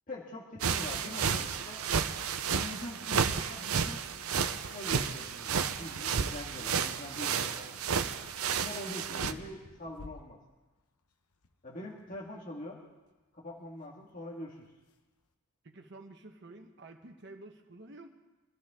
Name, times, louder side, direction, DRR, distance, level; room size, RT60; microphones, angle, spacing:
voice 1, 0.1-1.8 2.6-4.0 4.7-5.5 5.8-7.8 8.5-10.4 11.6-12.8 13.3-14.7, left 1 dB, 35° left, -3 dB, 1.9 m, -43 dB
sound 1, 0.6-9.3, right 6 dB, 80° right, 0.7 m, -32 dB
sound 2, 8.0-15.3, left 2 dB, 90° left, 1.0 m, -53 dB
voice 2, 15.6-18.1, right 2 dB, 50° right, 4 dB, 1.2 m, -50 dB
25.5 x 13.5 x 3.7 m, 1.2 s
head